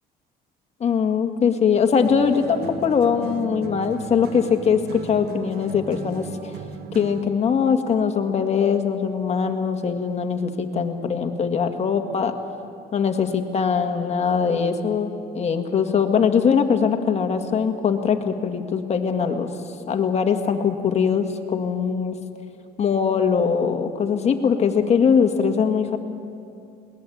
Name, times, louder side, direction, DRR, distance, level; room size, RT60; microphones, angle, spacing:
voice 1, 0.8-6.6 6.9-12.3 12.9-19.5 19.9-22.2 22.8-26.0, left 6 dB, 40° left, 6 dB, 1.9 m, -21 dB
sound 1, 2.0-7.4, right 6 dB, 70° right, 1.5 m, -37 dB
21.5 x 19.0 x 8.6 m, 2.5 s
cardioid pair, 110°, 17 cm